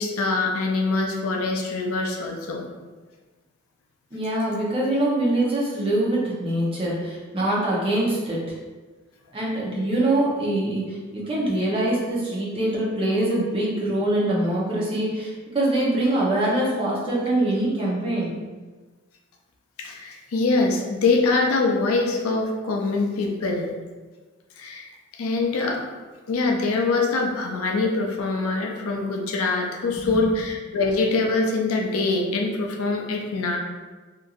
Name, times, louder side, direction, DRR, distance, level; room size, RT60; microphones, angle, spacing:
voice 1, 0.0-2.7 19.8-23.7 24.6-24.9 25.2-25.8 26.3-33.6, left 3 dB, 80° left, 1 dB, 0.4 m, -24 dB
voice 2, 4.1-8.4 9.3-18.3 30.1-30.2, right 1 dB, 25° right, -6 dB, 0.7 m, -24 dB
2.9 x 2.5 x 2.4 m, 1.3 s
head